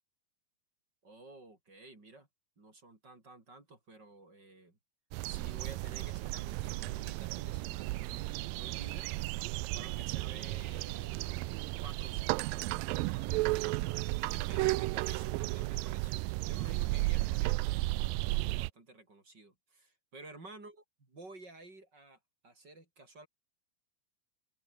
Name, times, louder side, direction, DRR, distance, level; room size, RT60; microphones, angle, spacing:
voice 1, 1.0-2.3 2.6-4.8 5.2-9.1 9.4-13.9 14.3-20.8 21.1-22.2 22.4-23.3, right 2 dB, 30° right, 5.4 m, -53 dB
sound 1, 5.1-18.7, right 21 dB, 80° right, 2.2 m, -34 dB
omnidirectional pair, 4.2 m